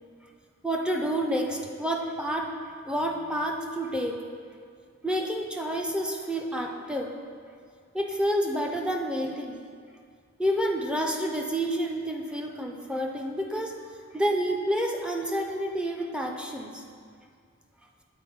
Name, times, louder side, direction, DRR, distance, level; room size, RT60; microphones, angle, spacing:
voice 1, 0.6-2.5 2.9-4.2 5.0-7.1 7.9-9.6 10.4-13.7 14.1-16.8, equal, 5° right, 1 dB, 0.4 m, -29 dB
7.9 x 3.9 x 4.5 m, 2.1 s
head